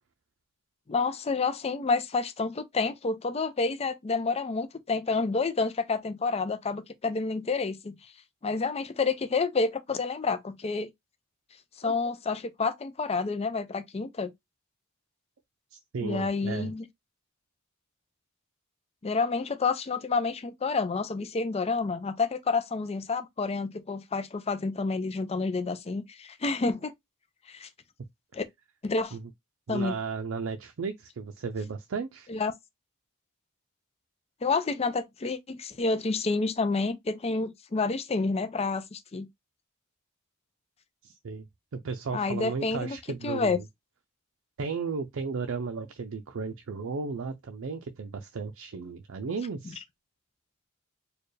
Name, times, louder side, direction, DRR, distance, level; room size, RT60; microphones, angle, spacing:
voice 1, 0.9-8.0 8.4-10.9 11.8-14.3 16.0-16.8 19.0-26.9 27.5-27.7 28.3-28.4 28.8-29.2 29.7-29.9 32.3-32.5 34.4-39.3 42.1-43.0 43.2-43.6, left 4 dB, 30° left, 0.5 m, -29 dB
voice 2, 15.7-16.7 29.1-29.3 29.7-32.3 41.0-43.7 44.6-49.8, right 5 dB, 65° right, 0.5 m, -35 dB
4.4 x 2.3 x 3.2 m
head